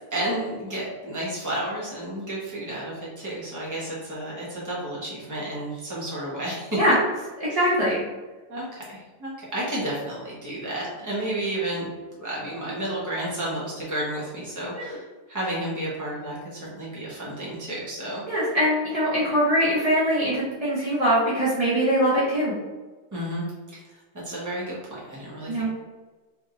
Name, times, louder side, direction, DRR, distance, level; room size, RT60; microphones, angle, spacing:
voice 1, 0.1-6.8 7.5-7.6 8.5-11.9 12.2-18.2 23.1-23.8 24.2-25.7, right 1 dB, 20° right, -7 dB, 0.5 m, -31 dB
voice 2, 7.5-8.0 14.7-14.9 18.2-22.5 25.5-25.7, equal, 65° right, -9 dB, 0.3 m, -22 dB
3.4 x 3.2 x 2.4 m, 1.3 s
omnidirectional pair, 2.0 m